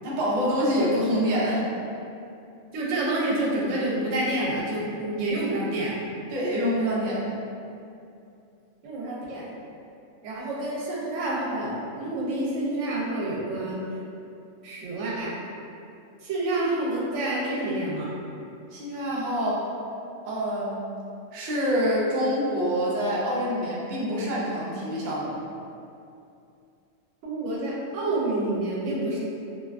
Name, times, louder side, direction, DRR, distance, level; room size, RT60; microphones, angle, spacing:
voice 1, 0.0-1.6 6.3-7.3 18.7-19.6 20.2-20.9 21.3-25.4, equal, 60° right, -6 dB, 0.5 m, -26 dB
voice 2, 2.7-5.9 8.8-9.4 10.2-13.8 14.6-15.4 16.2-18.1 27.2-29.2, right 1 dB, 75° right, -5 dB, 0.9 m, -28 dB
2.5 x 2.2 x 2.3 m, 2.6 s
omnidirectional pair, 1.3 m